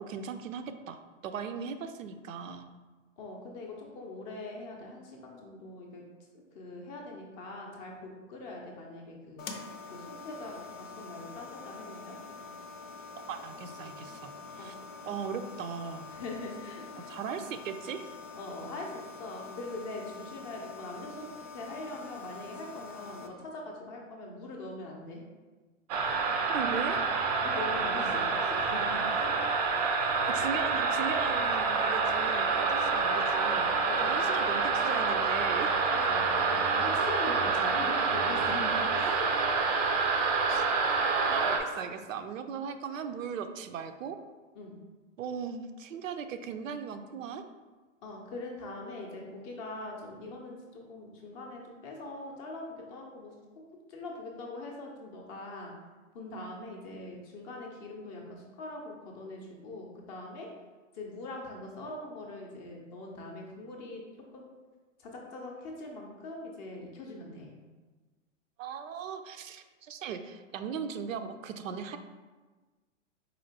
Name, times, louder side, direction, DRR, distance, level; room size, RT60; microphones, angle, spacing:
voice 1, 0.0-2.7 13.3-14.7 15.1-16.1 17.1-18.1 26.5-27.0 30.3-35.7 40.5-40.7 41.3-44.2 45.2-47.4 68.6-72.0, right 7 dB, 90° right, 8 dB, 0.5 m, -38 dB
voice 2, 3.2-6.0 6.3-9.4 9.9-12.2 14.6-14.7 16.2-17.1 18.4-21.3 21.5-25.2 27.4-29.3 33.8-34.3 35.9-39.4 44.5-44.8 48.0-53.3 53.9-55.7 56.1-60.5 60.9-64.0 64.3-64.4 65.0-67.5, left 2 dB, 25° left, 0 dB, 0.5 m, -42 dB
sound 1, 9.4-23.3, left 4 dB, 85° left, 0.6 m, -46 dB
sound 2, 25.9-41.6, right 4 dB, 35° right, 0.4 m, -27 dB
4.2 x 2.9 x 2.7 m, 1.3 s
hypercardioid pair, 135°, 38 cm